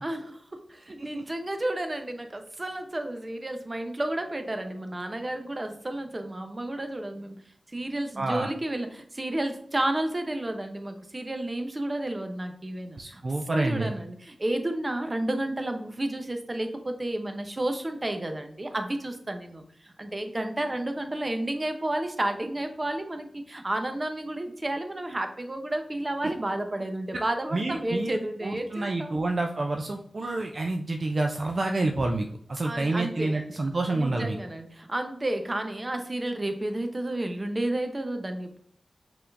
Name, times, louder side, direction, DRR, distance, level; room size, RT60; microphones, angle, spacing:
voice 1, 0.0-7.4 7.7-13.2 13.5-29.2 32.6-33.6 33.9-38.6, right 1 dB, 35° right, 6 dB, 0.8 m, -31 dB
voice 2, 8.2-8.5 13.0-13.9 27.5-34.4, right 2 dB, 60° right, 3 dB, 0.5 m, -28 dB
5.7 x 3.6 x 2.6 m, 0.64 s
cardioid pair, 50°, 0 cm